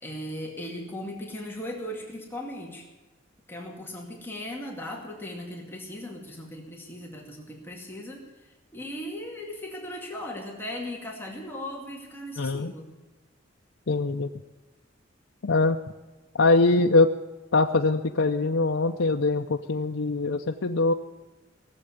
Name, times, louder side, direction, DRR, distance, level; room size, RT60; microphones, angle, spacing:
voice 1, 0.0-2.9 3.5-12.9, left 1 dB, 10° left, -1 dB, 2.3 m, -38 dB
voice 2, 12.4-12.7 13.9-14.3 15.4-15.8 16.3-17.1 17.5-20.9, left 3 dB, 85° left, 3 dB, 0.7 m, -22 dB
18.5 x 7.8 x 9.7 m, 1.2 s
head